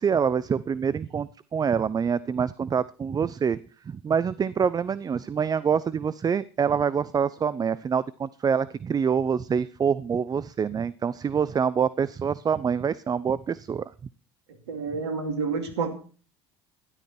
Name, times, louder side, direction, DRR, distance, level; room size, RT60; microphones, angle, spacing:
voice 1, 0.0-3.6 3.9-13.8, right 7 dB, 30° right, 0.6 m, -26 dB
voice 2, 14.7-15.9, right 5 dB, 85° right, 2.5 m, -29 dB
13.5 x 11.5 x 4.4 m
hypercardioid pair, 70°, 14 cm